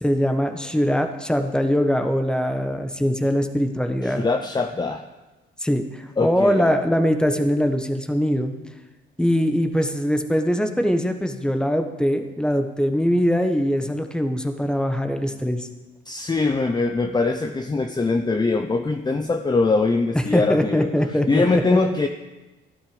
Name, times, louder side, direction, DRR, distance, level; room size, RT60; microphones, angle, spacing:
voice 1, 0.0-4.3 5.6-8.5 9.2-15.7 20.1-21.4 21.7-21.8, equal, 5° left, 6 dB, 1.4 m, -22 dB
voice 2, 4.0-5.0 6.2-6.7 16.1-20.9 21.3-22.1, left 3 dB, 20° left, 5 dB, 0.8 m, -22 dB
15.0 x 11.5 x 5.2 m, 1.1 s
cardioid pair, 90°, 20 cm